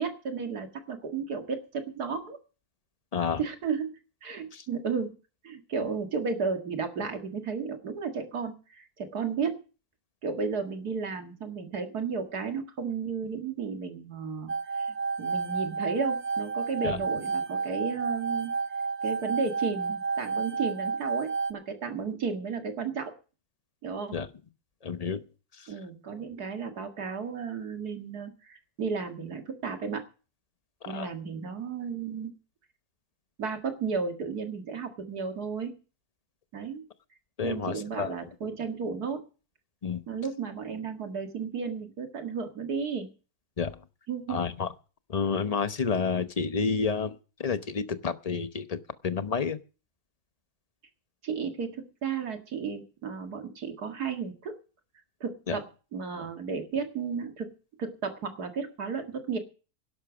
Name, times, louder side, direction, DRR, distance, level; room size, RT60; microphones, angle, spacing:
voice 1, 0.0-2.4 3.4-5.1 5.4-9.6 10.2-14.5 14.8-18.6 19.0-23.1 23.8-24.2 25.7-30.0 30.9-32.3 33.4-35.8 36.5-36.8 37.4-39.2 40.1-43.1 44.1-44.4 51.2-54.6 55.2-55.6 55.9-57.5 57.8-59.4, right 5 dB, 90° right, 5 dB, 2.4 m, -33 dB
voice 2, 3.1-3.4 4.5-4.7 16.8-17.0 24.1-24.3 24.8-25.2 25.5-25.7 30.8-31.1 37.4-38.1 39.8-40.0 43.6-43.8 44.3-44.7 45.1-49.6 55.5-55.6, left 5 dB, 30° left, 11 dB, 0.8 m, -30 dB
sound 1, 14.5-21.5, right 4 dB, 40° right, 0.6 m, -31 dB
12.0 x 11.5 x 6.1 m, 0.35 s
omnidirectional pair, 1.6 m